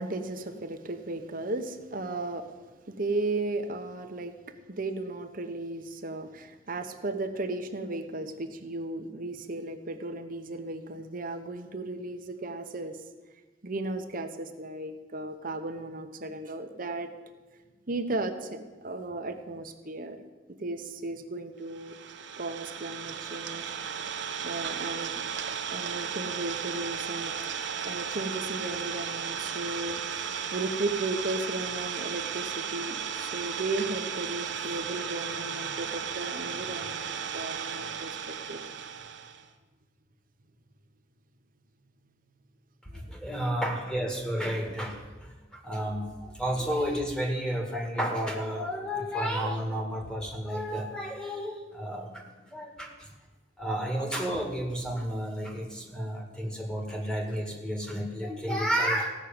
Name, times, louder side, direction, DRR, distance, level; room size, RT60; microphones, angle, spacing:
voice 1, 0.0-2.5 2.9-4.3 4.7-13.0 13.6-17.1 17.9-20.2 20.5-22.0 22.4-23.7 24.4-27.3 27.8-38.6, right 2 dB, 50° right, 7 dB, 1.1 m, -35 dB
Idling, 21.7-39.4, right 7 dB, 80° right, 0.9 m, -35 dB
voice 2, 42.8-53.1 53.6-59.1, equal, 5° left, 1 dB, 1.8 m, -31 dB
15.5 x 6.4 x 8.8 m, 1.3 s
head